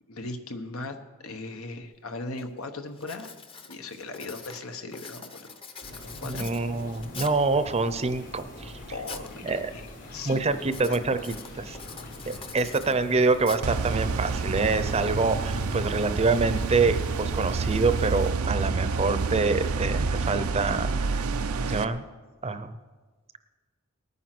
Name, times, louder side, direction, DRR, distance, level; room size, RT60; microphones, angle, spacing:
voice 1, 0.1-1.0 1.2-3.3 3.7-5.9 6.2-6.5 8.9-10.4 10.9-11.0 11.5-11.7, left 2 dB, 75° left, 7 dB, 1.2 m, -38 dB
Writing, 1.8-1.9 2.4-2.6 3.0-7.5 8.1-9.3 9.6-10.1 10.6-14.1, left 5 dB, 25° left, 0.9 m, -44 dB
sound 1, 5.8-18.3, left 1 dB, 55° left, 3.7 m, -43 dB
voice 2, 6.2-8.7 9.4-9.7 10.2-11.8 12.3-21.2 21.6-22.0 22.4-22.7, right 3 dB, 30° right, 11 dB, 0.7 m, -26 dB
sound 2, 13.6-21.8, right 4 dB, 90° right, 0.6 m, -28 dB
19.0 x 9.4 x 6.1 m, 1.3 s
head